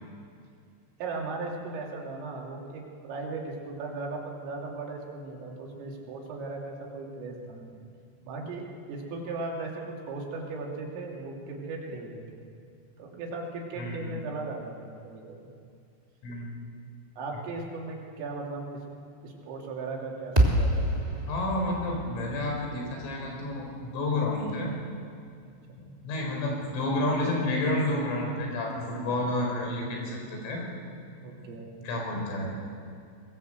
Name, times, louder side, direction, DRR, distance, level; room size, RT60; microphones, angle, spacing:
voice 1, 1.0-7.8 8.2-12.5 13.0-15.5 17.2-18.8 19.2-21.1 25.4-25.9 31.2-31.8, right 3 dB, 90° right, -1 dB, 5.6 m, -37 dB
voice 2, 13.8-14.1 16.2-16.5 21.3-24.7 26.0-30.6 31.8-32.5, left 1 dB, 85° left, 0 dB, 7.2 m, -30 dB
sound 1, 20.4-24.6, right 1 dB, 15° right, 1.6 m, -28 dB
21.5 x 20.5 x 8.0 m, 2.4 s
omnidirectional pair, 5.7 m